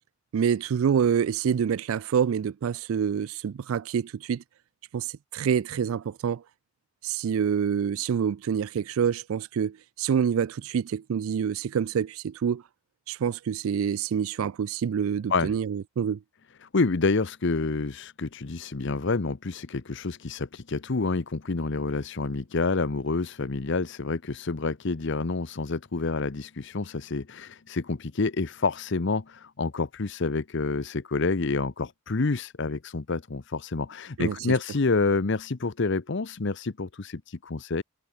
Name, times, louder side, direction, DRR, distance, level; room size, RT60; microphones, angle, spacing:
voice 1, 0.3-4.4 4.9-6.4 7.0-12.6 13.1-16.2 34.2-34.3, right 7 dB, 80° right, 0.4 m, -27 dB
voice 2, 16.6-37.8, left 3 dB, 60° left, 0.8 m, -28 dB
head